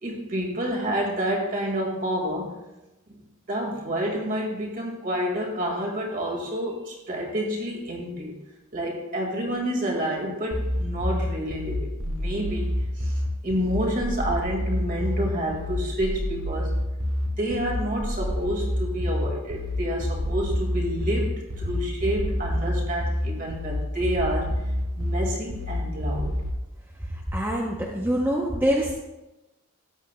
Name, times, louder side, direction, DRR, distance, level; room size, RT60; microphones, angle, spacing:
voice 1, 0.0-2.5 3.1-3.2 3.5-8.3 8.7-12.7 13.0-13.1 13.4-16.7 17.4-24.6 25.0-26.4, equal, 40° right, 0 dB, 1.9 m, -29 dB
sound 1, 10.5-26.5, left 1 dB, 80° right, 1.8 m, -28 dB
voice 2, 27.3-29.0, equal, 10° right, -2 dB, 0.7 m, -25 dB
13.5 x 8.1 x 2.2 m, 1.0 s
head